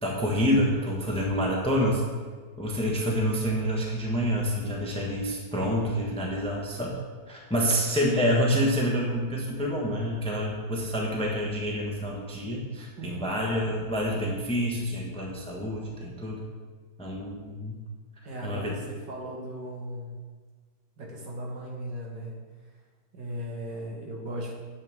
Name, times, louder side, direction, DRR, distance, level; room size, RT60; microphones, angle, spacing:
voice 1, 0.0-2.0 2.6-7.0 7.3-16.4 17.0-17.8 18.4-18.7, equal, 5° left, -2 dB, 1.0 m, -27 dB
voice 2, 13.0-13.3 18.2-20.2 21.0-22.3 23.1-24.5, equal, 70° right, -3 dB, 2.2 m, -37 dB
9.3 x 7.7 x 3.6 m, 1.5 s
omnidirectional pair, 2.0 m